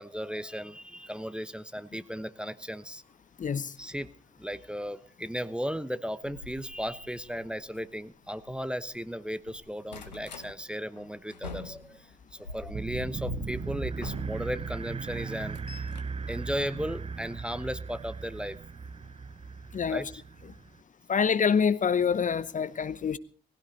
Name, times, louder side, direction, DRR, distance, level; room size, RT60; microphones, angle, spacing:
voice 1, 0.0-3.0 3.8-4.1 4.4-18.6 19.9-20.2, equal, 5° right, 0.9 m, -36 dB
voice 2, 3.4-3.7 19.7-20.0 21.1-23.2, left 6 dB, 35° left, 0.9 m, -26 dB
sound 1, 6.2-9.0 9.3-10.5 11.0-14.7 15.1-17.3 18.4-18.6 19.0-19.1 19.4-19.5, left 2 dB, 85° left, 1.0 m, -45 dB
sound 2, 12.7-20.8, right 5 dB, 30° right, 0.7 m, -38 dB
20.0 x 16.5 x 4.0 m
figure-of-eight pair, 40°, 21 cm